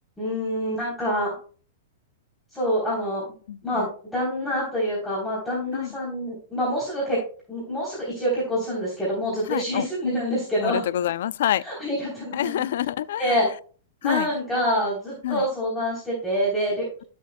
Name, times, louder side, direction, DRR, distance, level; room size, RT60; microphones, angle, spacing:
voice 1, 0.2-1.4 2.5-3.3 3.6-7.2 7.5-10.9 11.6-12.6 13.2-13.5 14.0-17.0, equal, 5° left, 3.5 m, -26 dB
voice 2, 9.5-9.9 10.6-11.6 12.3-13.4 14.0-14.3 15.2-15.4, left 11 dB, 70° left, 0.4 m, -26 dB
12.5 x 6.9 x 2.3 m
hypercardioid pair, 135°, 0 cm